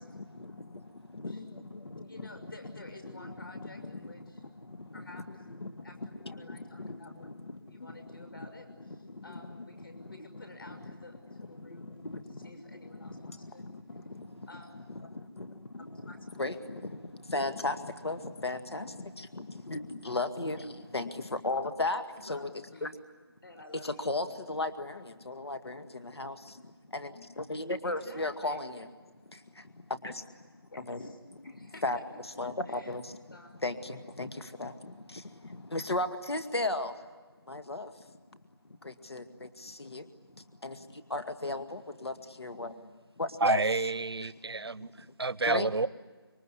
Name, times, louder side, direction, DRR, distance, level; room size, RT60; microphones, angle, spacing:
voice 1, 0.1-2.3 2.7-8.3 8.8-10.4 10.7-11.0 11.3-14.5 14.7-22.5 22.8-22.9 23.8-28.9 29.2-32.0 32.2-37.1 37.5-43.6 44.2-45.1 45.5-45.7, left 2 dB, 90° left, 2.0 m, -37 dB
voice 2, 2.0-4.4 4.9-5.3 5.8-7.3 7.7-11.9 12.4-13.6 14.5-14.8 16.1-16.3 16.6-16.7 20.4-20.8 22.1-22.4 22.7-22.9 23.4-24.1 27.8-28.6 30.7-32.0 32.7-33.0 33.3-33.6, left 2 dB, 60° left, 6.4 m, -51 dB
voice 3, 43.4-45.9, right 3 dB, 75° right, 0.9 m, -29 dB
26.5 x 23.0 x 9.8 m
figure-of-eight pair, 175°, 13 cm